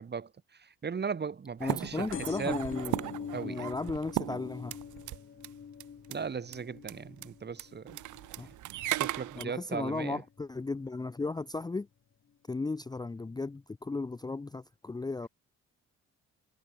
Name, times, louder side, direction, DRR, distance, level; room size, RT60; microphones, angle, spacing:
voice 1, 0.0-2.6 3.3-3.7 6.1-8.0 8.8-10.2, right 6 dB, 35° right, 1.9 m, -37 dB
voice 2, 1.6-2.9 3.4-4.8 8.4-8.5 9.4-11.9 12.5-15.3, left 3 dB, 15° left, 0.6 m, -35 dB
sound 1, 1.6-5.2 5.4-5.5 5.8-6.2 6.5-6.6 6.8-7.0 7.2-7.3 7.6-9.5, right 15 dB, 80° right, 1.0 m, -36 dB
sound 2, 2.1-9.3 9.8-10.3 11.2-11.3 11.5-11.6 11.8-11.9, left 7 dB, 45° left, 2.2 m, -45 dB
cardioid pair, 90°, 30 cm